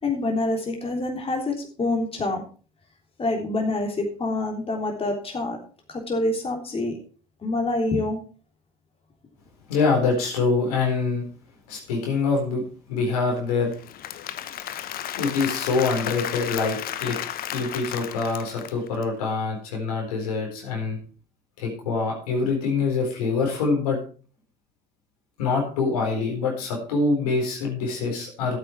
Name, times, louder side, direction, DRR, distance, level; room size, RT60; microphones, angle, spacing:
voice 1, 0.0-2.4 3.2-5.6 5.9-7.0 7.4-8.2, left 2 dB, 30° left, 1 dB, 3.5 m, -26 dB
voice 2, 9.7-11.2 11.7-12.6 12.9-13.7 15.2-17.2 17.5-21.0 21.6-24.0 25.4-28.6, left 4 dB, 80° left, 0 dB, 4.0 m, -25 dB
Applause / Crowd, 13.7-19.0, left 11 dB, 50° left, 0.9 m, -33 dB
12.0 x 8.6 x 4.5 m, 0.38 s
hypercardioid pair, 65°, 19 cm